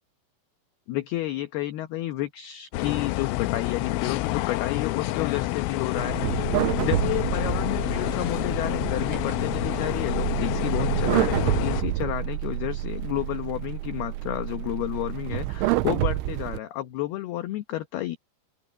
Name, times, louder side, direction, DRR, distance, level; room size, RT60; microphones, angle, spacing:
voice 1, 0.9-6.2 6.8-18.2, left 14 dB, 70° left, 2.6 m, -31 dB
sound 1, 2.7-11.8, left 18 dB, 85° left, 3.1 m, -28 dB
sound 2, 5.1-10.5, left 4 dB, 45° left, 8.8 m, -48 dB
sound 3, 6.0-16.6, right 16 dB, 85° right, 3.1 m, -28 dB
open air
omnidirectional pair, 5.6 m